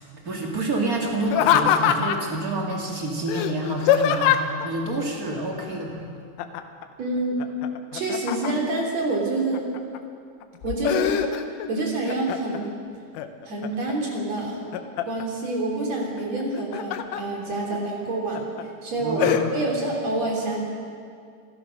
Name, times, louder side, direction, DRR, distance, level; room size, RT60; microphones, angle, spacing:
voice 1, 0.2-6.1 19.0-19.4, right 2 dB, 60° right, 0 dB, 0.9 m, -28 dB
Laughter, 1.3-2.4 3.3-4.7 6.4-6.9 7.2-8.8 9.3-10.0 10.4-11.7 12.1-12.7 13.2-13.9 14.4-15.3 16.4-17.2 17.7-17.8 18.4-18.6 19.2-19.4, left 10 dB, 85° left, 3.5 m, -23 dB
voice 2, 7.0-7.4 7.9-9.6 10.6-11.3 11.7-12.8 13.4-14.6 15.0-18.5 18.8-19.2 19.5-20.6, right 2 dB, 40° right, -2 dB, 3.8 m, -27 dB
27.0 x 17.0 x 6.5 m, 2.2 s
omnidirectional pair, 5.7 m